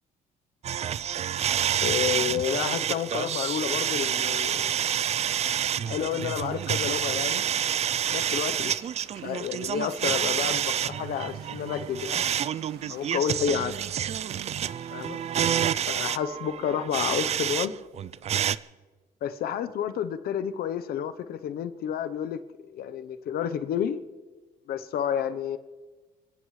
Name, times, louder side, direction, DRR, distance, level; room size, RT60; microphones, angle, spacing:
sound 1, 0.6-17.7 18.0-18.6, right 9 dB, 40° right, 0.4 m, -28 dB
voice 1, 1.8-4.7 5.8-7.4 8.1-8.9 9.2-12.2 12.9-13.7 14.9-15.2 15.9-17.7 19.2-22.4 22.7-24.0 24.7-25.6, left 9 dB, 65° left, 11 dB, 0.9 m, -30 dB
sound 2, 4.7-15.7, right 8 dB, 70° right, 1.5 m, -50 dB
26.5 x 16.5 x 3.2 m, 1.3 s
cardioid pair, 110°, 17 cm